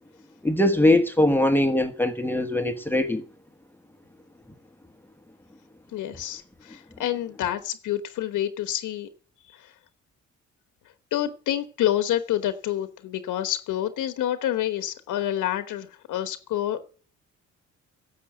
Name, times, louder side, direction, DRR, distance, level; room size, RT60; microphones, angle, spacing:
voice 1, 0.4-3.2, left 1 dB, 5° left, 1.3 m, -21 dB
voice 2, 5.9-9.1 9.5-9.7 11.1-16.8, left 12 dB, 85° left, 1.2 m, -28 dB
10.5 x 7.4 x 9.0 m
cardioid pair, 90°, 30 cm